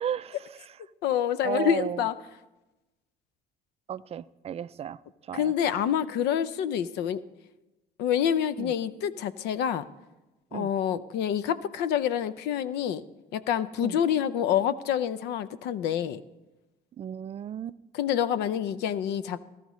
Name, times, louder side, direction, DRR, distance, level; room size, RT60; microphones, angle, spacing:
voice 1, 0.0-0.7 1.4-2.1 3.9-5.5 8.6-8.7 10.5-10.7 13.8-14.0 17.0-17.8, right 9 dB, 35° right, 16 dB, 0.4 m, -34 dB
voice 2, 1.0-2.1 5.3-7.2 8.0-9.9 10.5-13.0 13.3-16.2 17.9-19.4, left 9 dB, 85° left, 15 dB, 0.6 m, -27 dB
17.5 x 13.0 x 3.1 m, 1.1 s
cardioid pair, 110°, 17 cm